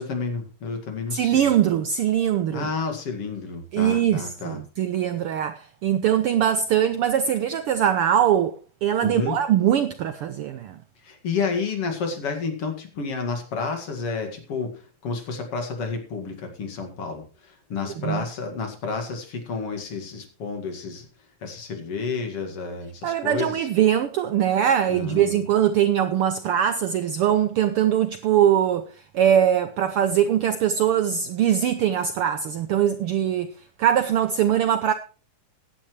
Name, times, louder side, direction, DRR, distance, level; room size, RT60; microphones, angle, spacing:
voice 1, 0.0-1.5 2.5-4.6 9.0-9.4 11.0-21.1 21.4-23.7 24.9-25.5, left 4 dB, 55° left, 2.9 m, -30 dB
voice 2, 1.1-2.7 3.7-8.5 8.8-10.8 18.0-18.2 23.0-28.9 29.1-33.5 33.8-34.9, right 10 dB, 90° right, 1.2 m, -22 dB
16.5 x 10.0 x 3.2 m
omnidirectional pair, 3.4 m